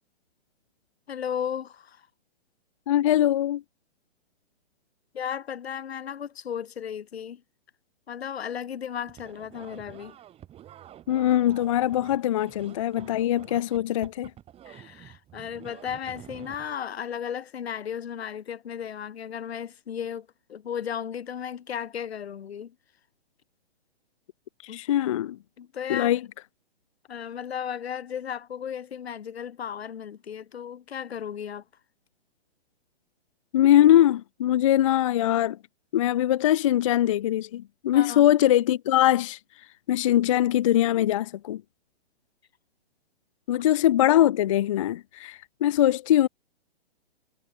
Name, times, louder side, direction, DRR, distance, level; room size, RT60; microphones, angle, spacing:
voice 1, 1.1-2.1 5.1-7.4 8.1-10.2 14.6-22.7 24.7-24.8 25.6-26.2 27.1-31.6 37.9-38.2 43.5-43.6, left 8 dB, 75° left, 1.0 m, -35 dB
voice 2, 2.9-3.6 11.1-14.3 24.6-25.4 25.9-26.2 33.5-35.6 35.9-39.4 39.9-41.6 43.5-46.3, left 12 dB, 35° left, 0.4 m, -22 dB
sound 1, 9.1-16.7, right 11 dB, 20° right, 4.5 m, -48 dB
hypercardioid pair, 135°, 31 cm